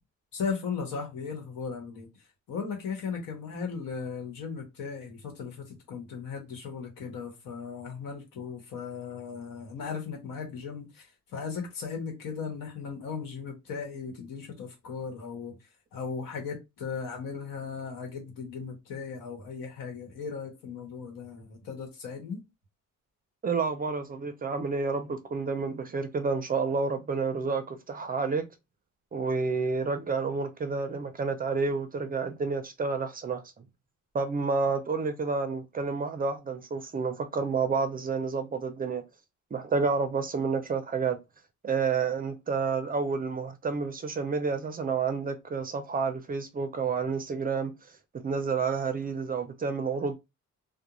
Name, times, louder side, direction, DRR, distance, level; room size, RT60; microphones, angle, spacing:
voice 1, 0.3-2.1 2.5-15.5 15.9-22.4, left 5 dB, 85° left, 1.1 m, -37 dB
voice 2, 23.4-28.5 29.1-33.6 34.1-39.0 39.5-41.2 41.6-47.7 48.1-50.2, right 4 dB, 30° right, 0.4 m, -29 dB
2.4 x 2.1 x 2.9 m
cardioid pair, 115°, 32 cm